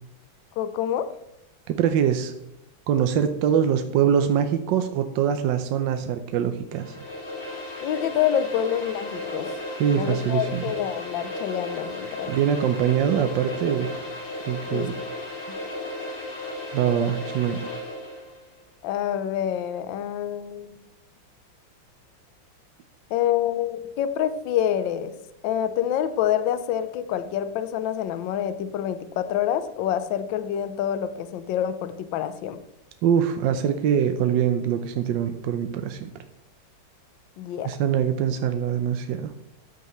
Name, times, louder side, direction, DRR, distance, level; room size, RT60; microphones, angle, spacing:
voice 1, 0.6-1.1 7.8-9.5 9.9-12.3 14.7-14.8 15.5-15.6 18.8-20.7 23.1-25.1 25.4-32.6 37.4-37.7, left 10 dB, 70° left, 11 dB, 1.3 m, -27 dB
voice 2, 1.7-2.3 2.9-7.0 9.8-10.6 12.3-14.1 14.5-15.0 16.7-17.6 33.0-36.1 37.6-39.3, right 8 dB, 70° right, 8 dB, 1.2 m, -23 dB
sound 1, 6.7-18.4, left 2 dB, 55° left, 3.2 m, -35 dB
13.5 x 9.3 x 3.1 m, 0.83 s
omnidirectional pair, 2.3 m